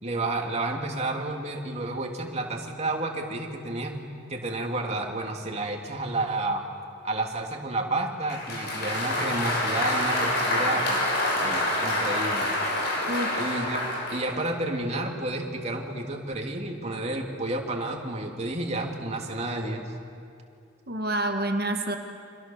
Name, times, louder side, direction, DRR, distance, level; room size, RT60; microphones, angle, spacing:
voice 1, 0.0-4.0 4.3-6.6 7.0-10.8 11.3-12.5 13.4-13.8 14.1-19.9, right 2 dB, 35° right, 1 dB, 3.0 m, -30 dB
Applause, 8.3-14.3, left 1 dB, 60° left, 7.1 m, -27 dB
voice 2, 13.0-13.4 20.9-22.0, right 1 dB, 50° right, 4 dB, 1.7 m, -28 dB
29.5 x 26.5 x 7.3 m, 2.4 s
head